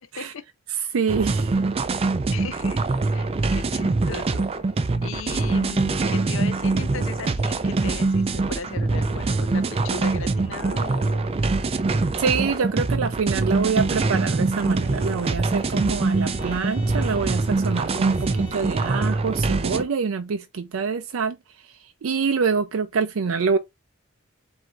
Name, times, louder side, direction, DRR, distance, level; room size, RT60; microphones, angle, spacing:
voice 1, 0.0-0.4 2.3-2.8 3.1-4.5 5.0-11.3, left 5 dB, 70° left, 0.5 m, -37 dB
voice 2, 0.9-1.6 12.2-23.6, right 5 dB, 85° right, 0.5 m, -26 dB
sound 1, 1.1-19.8, right 3 dB, 30° right, 0.4 m, -24 dB
Bowed string instrument, 14.6-19.2, left 5 dB, 25° left, 1.2 m, -45 dB
7.6 x 2.7 x 2.3 m
head